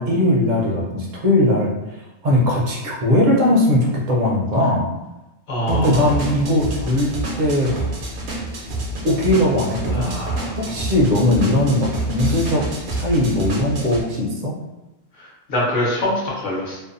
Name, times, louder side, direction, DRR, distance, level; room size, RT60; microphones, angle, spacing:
voice 1, 0.0-2.0 2.2-4.9 5.7-7.1 7.4-8.0 9.0-10.1 10.6-12.7 12.9-14.6, left 1 dB, 50° right, -2 dB, 0.6 m, -19 dB
voice 2, 5.5-6.1 9.9-10.6 15.5-16.8, left 1 dB, 50° left, -6 dB, 1.0 m, -24 dB
sound 1, 5.7-14.0, right 2 dB, 75° right, 0.9 m, -28 dB
2.6 x 2.1 x 2.5 m, 1.0 s
omnidirectional pair, 1.1 m